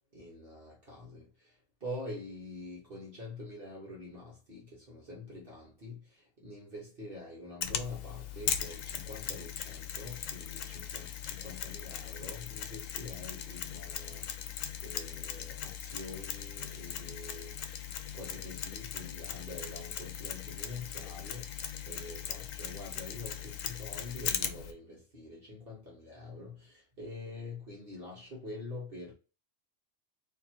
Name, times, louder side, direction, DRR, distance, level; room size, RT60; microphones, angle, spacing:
voice 1, 0.1-14.6 14.8-17.6 18.1-29.1, left 2 dB, 45° right, 1.2 m, -46 dB
Mechanisms, 7.6-24.7, left 9 dB, 80° left, 1.0 m, -39 dB
2.9 x 2.9 x 4.2 m
omnidirectional pair, 1.3 m